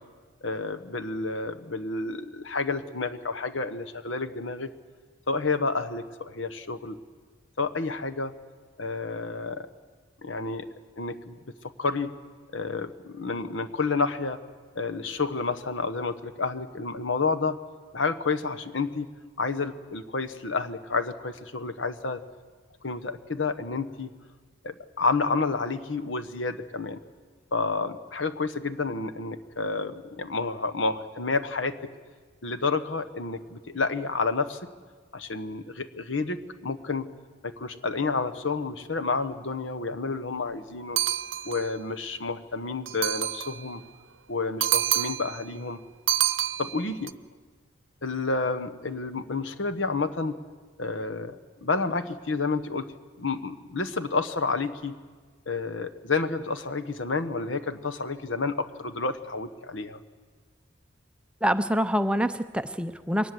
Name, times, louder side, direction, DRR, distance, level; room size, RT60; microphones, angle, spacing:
voice 1, 0.4-4.7 5.3-7.0 7.6-8.3 8.8-9.7 10.2-10.7 11.0-11.4 11.8-12.1 12.5-14.4 14.7-17.6 17.9-22.2 22.8-24.1 24.6-27.0 27.5-31.8 32.4-34.6 35.1-37.1 37.4-41.0 41.5-43.8 44.3-45.8 46.6-47.1 48.0-50.4 50.8-52.9 53.2-54.9 55.5-60.0, left 4 dB, 80° left, 10 dB, 1.2 m, -30 dB
sound 1, 41.0-41.7 42.9-43.6 44.6-45.4 46.1-47.1, right 13 dB, 80° right, 0.7 m, -27 dB
voice 2, 61.4-63.3, equal, 5° right, 10 dB, 0.6 m, -26 dB
23.0 x 19.0 x 7.8 m, 1.5 s
head